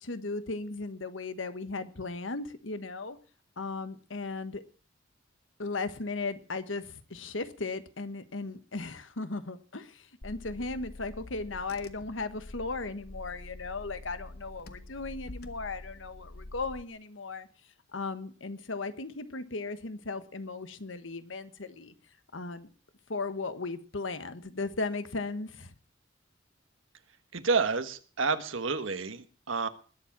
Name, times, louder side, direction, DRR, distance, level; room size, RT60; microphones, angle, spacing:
voice 1, 0.0-3.2 3.6-4.6 5.6-17.5 17.9-21.9 22.3-22.7 23.1-25.7, left 3 dB, 80° left, 11 dB, 1.3 m, -36 dB
Car / Engine, 10.2-16.8, left 2 dB, 55° left, 1.2 m, -46 dB
voice 2, 27.3-29.7, right 4 dB, 85° right, 10 dB, 1.3 m, -29 dB
20.5 x 7.4 x 6.0 m, 0.39 s
head